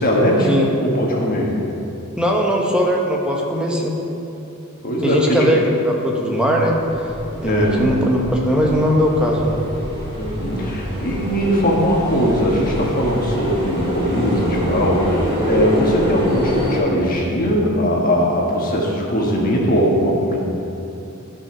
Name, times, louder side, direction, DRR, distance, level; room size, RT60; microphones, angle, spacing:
voice 1, 0.0-0.5 0.8-1.6 4.8-5.5 7.4-7.8 10.1-20.4, equal, 40° left, -2 dB, 1.6 m, -19 dB
voice 2, 2.2-4.0 5.0-7.1 7.4-9.6, equal, 5° right, -1 dB, 1.0 m, -19 dB
sound 1, 6.7-16.8, equal, 25° right, 2.0 m, -26 dB
11.5 x 5.6 x 6.0 m, 2.9 s
head